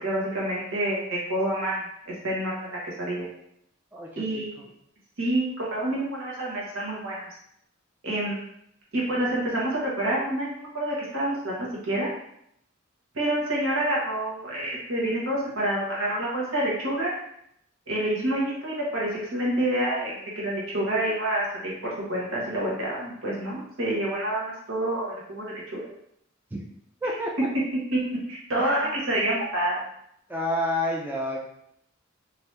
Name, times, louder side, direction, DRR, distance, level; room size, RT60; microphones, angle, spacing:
voice 1, 0.0-3.3 4.2-4.6 5.2-7.3 8.0-8.4 8.9-12.1 13.1-17.1 17.9-25.9 27.9-29.8, right 1 dB, 80° right, -5 dB, 1.2 m, -28 dB
voice 2, 3.9-4.4 26.5-26.6 27.0-27.3 28.6-29.0 30.3-31.4, left 1 dB, 10° right, -2 dB, 0.3 m, -29 dB
2.9 x 2.6 x 3.3 m, 0.73 s
head